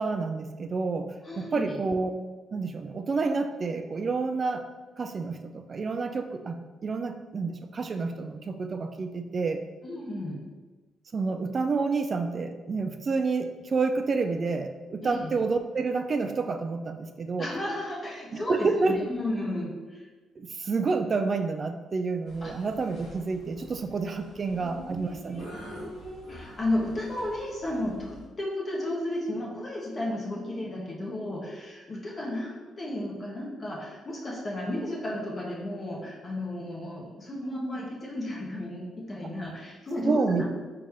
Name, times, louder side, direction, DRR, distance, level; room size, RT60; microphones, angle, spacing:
voice 1, 0.0-2.1 2.5-4.7 5.0-9.6 11.1-17.5 18.3-19.1 20.4-25.5 40.1-40.4, right 4 dB, 40° right, 7 dB, 0.3 m, -29 dB
voice 2, 1.2-1.8 9.8-10.4 15.0-15.3 17.4-20.1 22.4-22.5 24.5-40.4, left 1 dB, 35° left, -4 dB, 1.0 m, -33 dB
sound 1, 22.3-28.3, left 1 dB, 90° left, 1.5 m, -47 dB
4.1 x 3.2 x 3.5 m, 1.3 s
cardioid pair, 90°, 0 cm